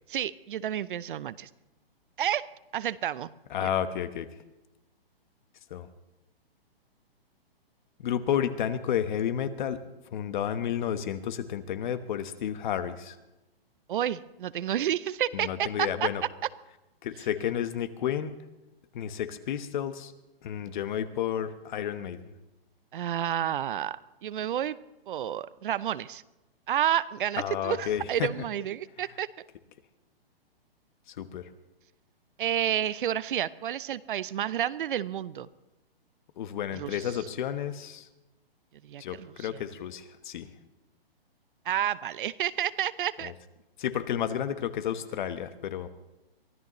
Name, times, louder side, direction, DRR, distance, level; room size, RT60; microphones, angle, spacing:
voice 1, 0.1-1.5 2.2-3.3 3.6-3.7 13.9-16.1 17.2-17.3 22.9-24.8 25.1-26.2 26.7-29.5 32.4-35.5 36.7-37.3 38.8-39.6 41.6-43.3, right 10 dB, 60° right, 17 dB, 0.6 m, -30 dB
voice 2, 3.5-4.3 5.7-5.9 8.0-9.8 10.1-13.1 15.4-16.2 17.0-18.3 18.9-20.1 20.4-22.2 27.4-28.3 31.2-31.4 36.4-38.0 39.0-40.5 43.8-45.9, left 9 dB, 50° left, 11 dB, 1.2 m, -31 dB
23.5 x 15.0 x 3.1 m, 1.0 s
hypercardioid pair, 135°, 30 cm